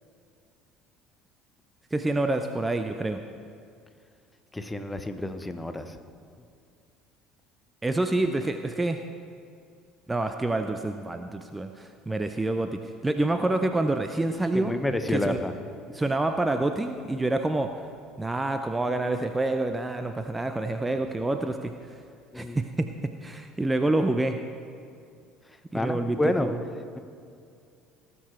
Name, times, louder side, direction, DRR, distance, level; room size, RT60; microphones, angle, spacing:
voice 1, 1.9-3.2 7.8-9.0 10.1-14.7 15.1-15.4 15.9-17.7 18.2-21.7 22.3-22.9 23.2-24.4 25.7-26.6, right 2 dB, 15° right, 7 dB, 0.6 m, -27 dB
voice 2, 4.5-5.9 14.5-15.5 22.3-22.6 25.7-26.5, left 1 dB, 10° left, 9 dB, 0.9 m, -29 dB
18.5 x 6.9 x 4.4 m, 2.4 s
figure-of-eight pair, 60°, 0 cm